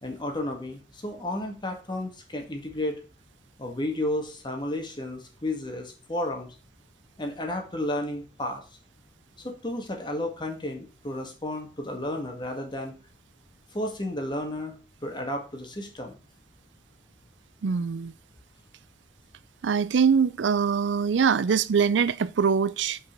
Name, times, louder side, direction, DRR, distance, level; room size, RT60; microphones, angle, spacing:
voice 1, 0.0-3.0 3.6-6.5 7.2-8.6 9.4-13.0 13.7-14.8 15.0-16.2, left 1 dB, 25° left, 1.9 m, -32 dB
voice 2, 17.6-18.1 19.6-23.0, right 6 dB, 90° right, 0.4 m, -23 dB
5.7 x 5.5 x 5.2 m
head